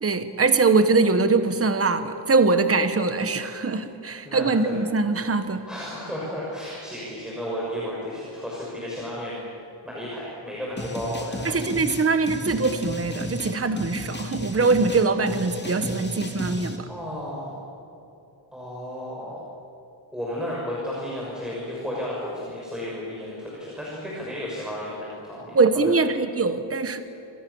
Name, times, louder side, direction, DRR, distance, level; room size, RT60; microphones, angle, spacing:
voice 1, 0.0-5.7 11.4-16.9 25.5-27.0, right 3 dB, 30° right, 9 dB, 1.4 m, -22 dB
voice 2, 4.1-4.8 5.6-9.4 9.8-11.6 16.9-17.6 18.5-19.4 20.1-25.9, equal, ahead, -6 dB, 6.5 m, -33 dB
sound 1, 10.8-16.8, left 1 dB, 20° left, 3.1 m, -34 dB
29.5 x 26.5 x 7.2 m, 2.8 s
wide cardioid pair, 155°, 47 cm